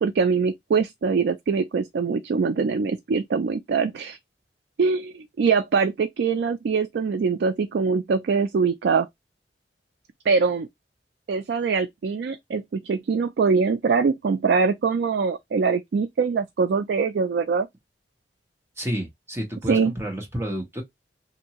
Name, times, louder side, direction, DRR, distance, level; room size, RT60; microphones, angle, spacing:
voice 1, 0.0-4.2 4.8-9.1 10.3-10.7 11.3-17.7 19.7-19.9, right 5 dB, 65° right, 0.3 m, -23 dB
voice 2, 18.8-20.8, equal, 15° right, 1.1 m, -30 dB
2.7 x 2.6 x 2.9 m
head